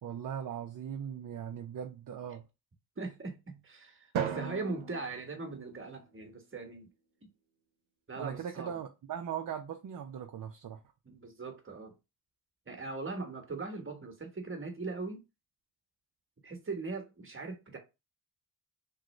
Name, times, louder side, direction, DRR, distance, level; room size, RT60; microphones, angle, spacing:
voice 1, 0.0-2.4 8.2-10.8, right 8 dB, 45° right, 0.6 m, -39 dB
voice 2, 3.0-6.9 8.1-8.8 11.0-11.9 12.7-15.2 16.4-17.8, right 3 dB, 25° right, 1.2 m, -40 dB
Drum, 4.1-6.4, right 8 dB, 75° right, 0.8 m, -38 dB
3.1 x 2.4 x 3.2 m
supercardioid pair, 55°, 47 cm